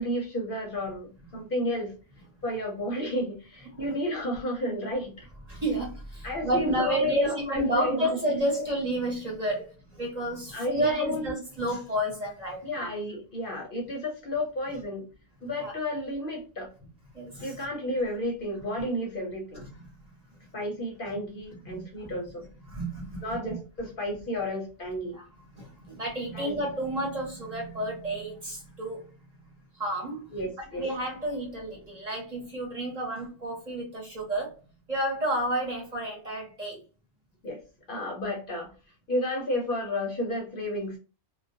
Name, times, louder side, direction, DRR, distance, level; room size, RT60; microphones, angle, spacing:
voice 1, 0.0-1.9 2.4-5.3 6.2-8.2 10.5-11.3 12.6-15.1 15.4-16.7 17.4-19.6 20.5-22.5 23.2-25.2 26.3-26.6 30.3-30.8 37.4-37.6 37.9-38.7 39.1-41.0, left 1 dB, 55° left, 0.8 m, -32 dB
voice 2, 5.5-12.9 15.6-15.7 17.1-17.6 19.5-19.9 21.7-22.2 22.7-23.6 25.1-25.2 25.6-29.1 29.7-30.4 30.8-34.6 34.9-36.8, right 1 dB, 35° right, 0.9 m, -31 dB
2.3 x 2.1 x 2.6 m
omnidirectional pair, 1.2 m